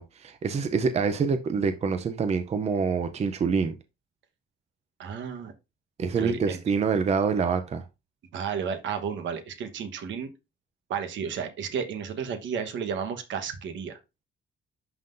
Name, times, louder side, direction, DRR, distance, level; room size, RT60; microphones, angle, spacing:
voice 1, 0.0-3.8 6.0-7.8, right 5 dB, 35° right, 0.6 m, -26 dB
voice 2, 5.0-5.5 6.1-6.6 8.3-10.3 10.9-14.0, right 7 dB, 75° right, 1.2 m, -32 dB
11.0 x 3.7 x 2.6 m
cardioid pair, 135°, 19 cm